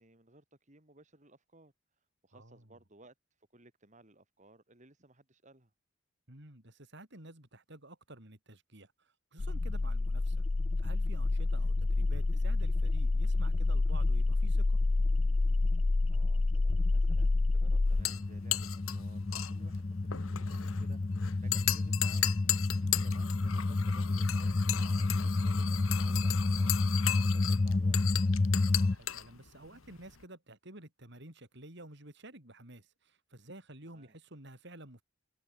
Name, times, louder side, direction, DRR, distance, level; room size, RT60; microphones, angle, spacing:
voice 1, 0.0-5.7 11.4-11.7 15.7-22.7 23.0-28.0 33.8-34.1, right 2 dB, 35° right, 3.6 m, -60 dB
voice 2, 6.3-8.9 9.3-10.4 10.8-14.8 22.8-23.0 28.8-35.0, right 1 dB, 60° right, 5.4 m, -51 dB
sound 1, 9.4-29.0, left 2 dB, 30° left, 0.4 m, -29 dB
sound 2, 17.9-30.2, left 13 dB, 85° left, 1.2 m, -37 dB
head